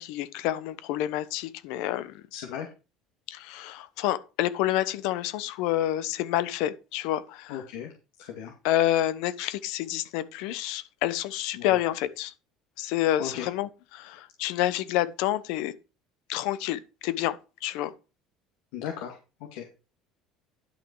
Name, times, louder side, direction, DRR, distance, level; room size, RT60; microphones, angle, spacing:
voice 1, 0.0-2.2 3.3-7.6 8.6-12.3 12.8-15.7 16.3-17.9, left 13 dB, 70° left, 0.9 m, -28 dB
voice 2, 2.3-2.7 7.5-7.9 8.2-8.5 11.6-11.8 13.2-13.5 18.7-19.7, left 9 dB, 90° left, 2.2 m, -36 dB
11.0 x 6.3 x 4.7 m
cardioid pair, 170°, 0 cm